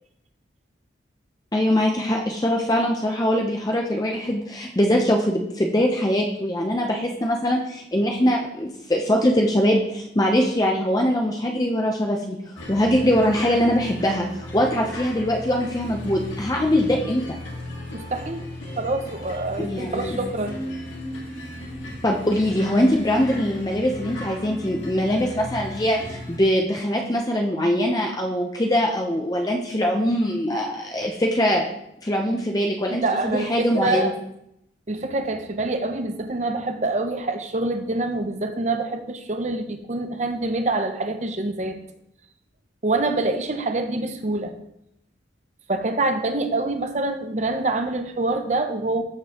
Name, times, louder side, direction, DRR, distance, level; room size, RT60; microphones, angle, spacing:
voice 1, 1.5-12.4 12.7-17.4 19.6-20.2 22.0-31.7 32.0-34.1, equal, 20° left, 1 dB, 0.7 m, -22 dB
sound 1, 12.6-26.4, left 1 dB, 80° left, 2.1 m, -36 dB
voice 2, 17.9-18.4 18.8-20.6 33.0-34.1 34.9-41.8 42.8-44.5 45.7-49.0, right 2 dB, 40° right, 7 dB, 0.7 m, -26 dB
14.0 x 5.2 x 3.0 m, 0.77 s
head